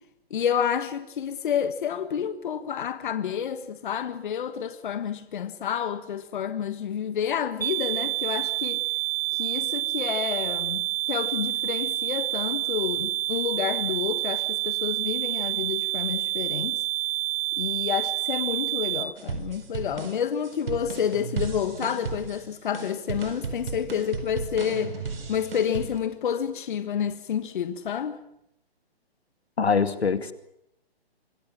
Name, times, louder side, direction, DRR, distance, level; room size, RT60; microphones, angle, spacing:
voice 1, 0.3-8.8 9.3-16.8 17.6-25.0 25.3-28.2, left 8 dB, 50° left, 1.5 m, -29 dB
sound 1, 7.6-19.0, right 16 dB, 80° right, 3.2 m, -28 dB
sound 2, 19.2-26.0, right 5 dB, 65° right, 4.7 m, -35 dB
voice 2, 29.6-30.3, left 5 dB, 85° left, 2.3 m, -23 dB
26.0 x 19.5 x 7.4 m
hypercardioid pair, 145°, 31 cm